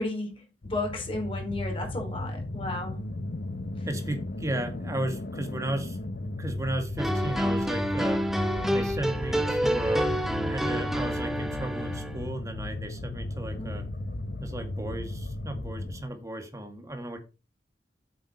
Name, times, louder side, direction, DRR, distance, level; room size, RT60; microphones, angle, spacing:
voice 1, 0.0-3.0 3.8-3.9 13.5-13.7, left 2 dB, 30° left, 4.1 m, -33 dB
sound 1, 0.6-16.0, left 2 dB, 55° left, 0.8 m, -35 dB
voice 2, 3.9-6.0 6.4-8.2 8.7-10.1 10.4-13.9 14.4-17.2, right 1 dB, 20° right, 2.0 m, -34 dB
sound 2, 7.0-12.2, equal, ahead, 1.0 m, -28 dB
8.4 x 7.7 x 4.2 m
head